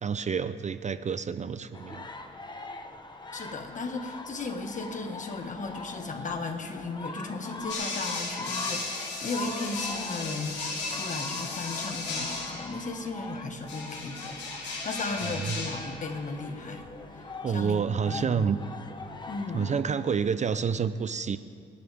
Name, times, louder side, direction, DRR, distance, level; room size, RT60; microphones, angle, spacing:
voice 1, 0.0-2.1 15.3-15.6 17.4-18.6 19.5-21.4, right 6 dB, 35° right, 13 dB, 0.5 m, -28 dB
sound 1, 1.7-19.8, left 3 dB, 20° left, 1.1 m, -42 dB
voice 2, 3.3-16.9 17.1-18.6 19.3-19.7, left 3 dB, 40° left, 4 dB, 1.7 m, -36 dB
sound 2, 7.7-12.8 13.7-16.0, left 3 dB, 60° left, 3.3 m, -35 dB
28.0 x 11.0 x 3.6 m, 2.5 s
cardioid pair, 90°, 20 cm